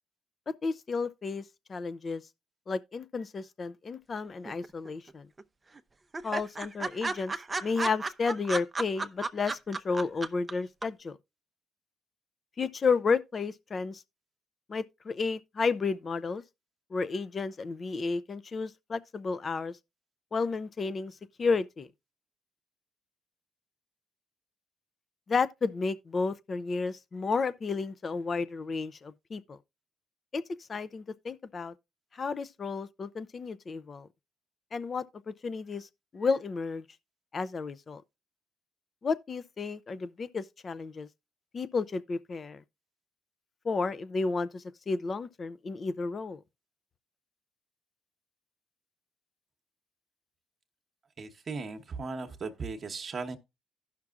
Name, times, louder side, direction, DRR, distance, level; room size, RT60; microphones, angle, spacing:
voice 1, 0.5-1.4 1.7-2.2 2.7-5.3 6.2-7.3 7.6-11.2 12.6-14.0 14.7-16.4 16.9-19.8 20.3-21.9 25.3-29.6 30.3-30.4 30.7-31.7 32.1-34.1 34.7-35.9 36.1-36.8 37.3-38.0 39.0-41.1 41.5-42.6 43.6-46.4, left 4 dB, 45° left, 0.5 m, -32 dB
sound 1, 4.5-5.1 5.4-5.5 5.8-5.9 6.1-10.5 10.8-10.9, right 3 dB, 30° right, 0.5 m, -33 dB
voice 2, 51.2-53.4, right 4 dB, 50° right, 0.9 m, -37 dB
16.0 x 5.9 x 2.4 m
supercardioid pair, 60°, 0 cm